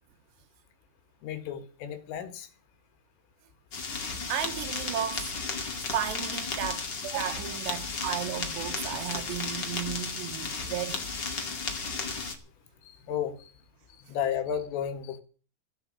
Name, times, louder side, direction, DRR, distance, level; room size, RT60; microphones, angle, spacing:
voice 1, 1.2-2.5 12.8-13.5 13.9-15.2, left 8 dB, 90° left, 4.5 m, -33 dB
sound 1, 3.7-12.3, left 4 dB, 45° left, 1.4 m, -34 dB
voice 2, 4.3-5.3 5.9-11.0, right 11 dB, 75° right, 2.9 m, -34 dB
16.0 x 8.1 x 8.6 m
omnidirectional pair, 5.6 m